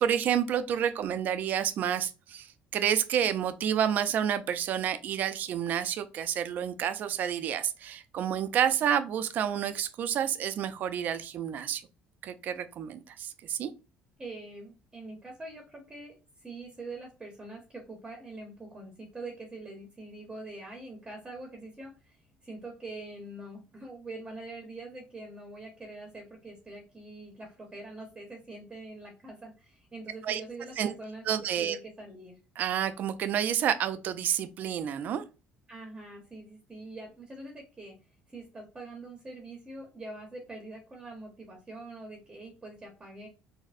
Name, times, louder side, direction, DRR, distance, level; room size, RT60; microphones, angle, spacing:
voice 1, 0.0-11.8 12.2-13.7 30.2-30.4 30.8-30.9 31.3-31.8 32.6-35.2, right 9 dB, 50° right, 0.3 m, -29 dB
voice 2, 14.2-32.4 35.7-38.0 38.3-43.3, right 2 dB, 20° right, 0.7 m, -44 dB
4.0 x 2.0 x 2.5 m
cardioid pair, 125°, 4 cm